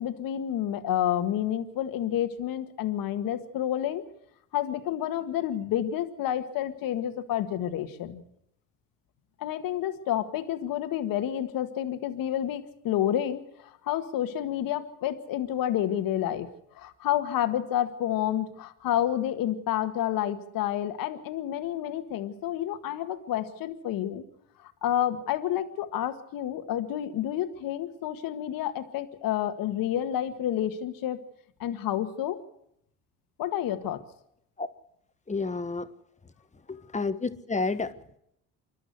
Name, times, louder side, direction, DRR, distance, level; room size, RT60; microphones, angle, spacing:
voice 1, 0.0-4.0 4.5-8.2 9.4-16.5 16.7-24.2 24.6-31.2 31.6-32.4 33.4-34.0, left 11 dB, 65° left, 9 dB, 1.8 m, -29 dB
voice 2, 35.3-35.9 36.7-37.9, left 3 dB, 20° left, 10 dB, 1.5 m, -30 dB
27.5 x 12.0 x 8.0 m, 0.77 s
supercardioid pair, 80°, 36 cm